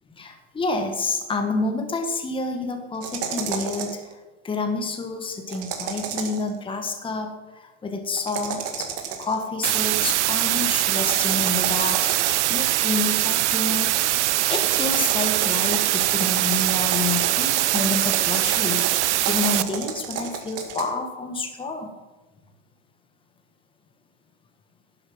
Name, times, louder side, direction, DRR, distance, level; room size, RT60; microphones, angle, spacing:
voice 1, 0.1-4.2 4.4-8.9 9.2-14.0 14.5-18.9 19.2-21.9, left 3 dB, 15° left, 4 dB, 1.5 m, -29 dB
sound 1, 3.0-4.0 5.5-6.5 8.1-9.4 11.0-12.6 14.6-20.8, right 7 dB, 45° right, 2.0 m, -32 dB
sound 2, 9.6-19.6, right 16 dB, 80° right, 0.6 m, -22 dB
11.5 x 7.8 x 6.1 m, 1.2 s
hypercardioid pair, 105°, 34 cm